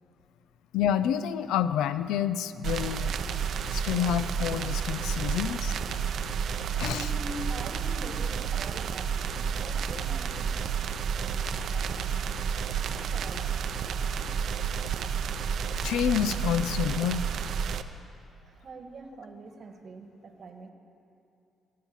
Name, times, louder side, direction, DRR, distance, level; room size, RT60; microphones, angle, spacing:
voice 1, 0.7-3.1 3.7-5.8 6.8-7.1 15.8-17.3, left 9 dB, 90° left, 14 dB, 0.4 m, -28 dB
sound 1, 2.6-17.8, right 7 dB, 65° right, 0.5 m, -31 dB
voice 2, 6.8-14.3 18.4-20.7, right 2 dB, 45° right, 6 dB, 1.3 m, -45 dB
16.5 x 7.6 x 7.3 m, 2.7 s
cardioid pair, 90°, 0 cm